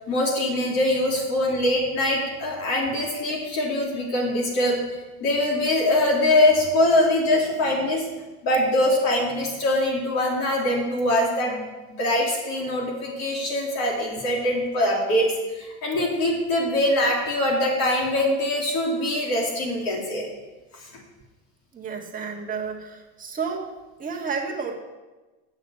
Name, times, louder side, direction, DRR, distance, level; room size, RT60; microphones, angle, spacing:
voice 1, 0.1-4.8 5.2-8.0 8.4-11.6 12.0-20.3, left 1 dB, 50° left, -2 dB, 3.3 m, -23 dB
voice 2, 21.7-23.7 24.0-24.8, right 5 dB, 20° right, -2 dB, 1.7 m, -31 dB
8.1 x 6.5 x 8.3 m, 1.2 s
cardioid pair, 145°, 44 cm